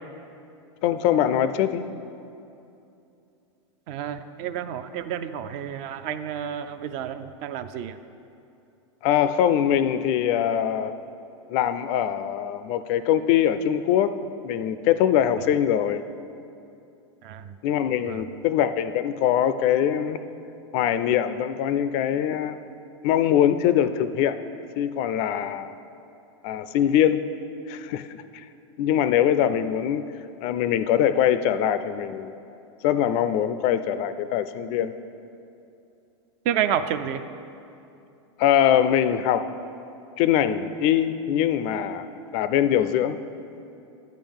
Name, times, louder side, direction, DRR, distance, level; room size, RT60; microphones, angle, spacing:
voice 1, 0.8-1.9 9.0-10.9 11.5-14.2 14.4-16.0 17.6-20.2 20.7-22.6 23.0-24.4 24.8-25.8 26.4-27.3 27.7-28.4 28.8-30.0 30.4-32.3 32.8-34.9 38.4-39.5 40.2-42.1 42.3-43.2, left 10 dB, 45° left, 12 dB, 0.4 m, -22 dB
voice 2, 3.9-8.0 17.2-17.5 18.1-18.2 36.5-37.2, right 9 dB, 45° right, 11 dB, 0.4 m, -30 dB
9.0 x 3.8 x 7.1 m, 2.7 s
hypercardioid pair, 125°, 15 cm